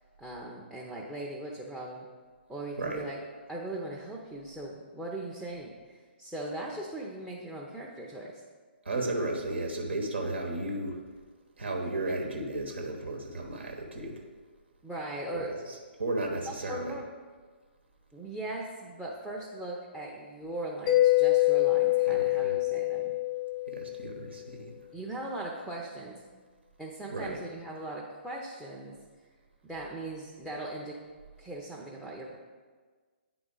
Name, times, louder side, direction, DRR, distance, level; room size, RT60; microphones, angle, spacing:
voice 1, 0.2-2.1 2.5-3.2 3.5-8.4 12.1-12.2 14.8-15.5 16.5-17.1 18.1-23.1 24.9-26.2 26.8-29.0 29.6-31.0 31.4-32.4, right 1 dB, 5° right, -2 dB, 0.6 m, -39 dB
voice 2, 8.8-11.0 11.6-14.2 15.3-15.4 16.0-16.8 22.1-22.5 23.7-24.8 27.1-27.4, right 2 dB, 70° right, 2 dB, 1.1 m, -34 dB
Mallet percussion, 20.9-24.3, left 18 dB, 35° left, 0.6 m, -25 dB
8.9 x 3.9 x 3.7 m, 1.5 s
figure-of-eight pair, 130°, 6 cm